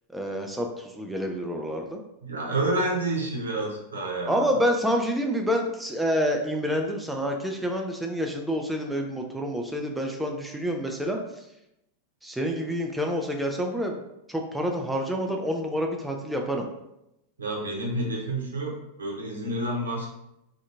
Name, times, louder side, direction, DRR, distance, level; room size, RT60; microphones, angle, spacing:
voice 1, 0.1-2.0 4.3-11.4 12.2-14.0 14.3-16.7, equal, 5° right, 2 dB, 0.4 m, -28 dB
voice 2, 2.2-4.5 17.4-20.1, right 2 dB, 70° right, -1 dB, 0.8 m, -29 dB
3.2 x 2.7 x 2.6 m, 0.85 s
figure-of-eight pair, 90°, 0 cm